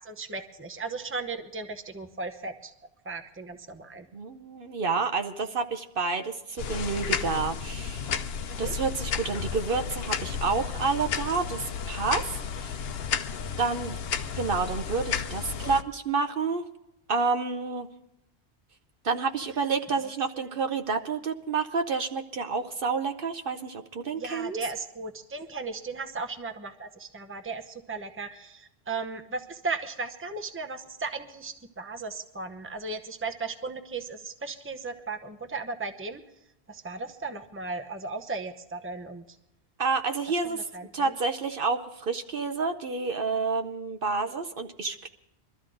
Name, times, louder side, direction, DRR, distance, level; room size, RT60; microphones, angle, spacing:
voice 1, 0.0-2.7 3.0-4.1 8.5-8.8 15.6-15.7 24.2-36.2 36.7-39.2 40.5-41.1, right 4 dB, 15° right, 6 dB, 0.8 m, -36 dB
voice 2, 4.1-8.1 8.6-12.8 13.6-14.0 14.4-16.6 17.1-17.9 19.0-24.6 39.8-40.6 40.9-45.1, right 4 dB, 60° right, 6 dB, 1.0 m, -29 dB
sound 1, 6.6-15.8, left 7 dB, 70° left, 1.0 m, -32 dB
23.0 x 13.5 x 3.9 m, 0.83 s
omnidirectional pair, 1.1 m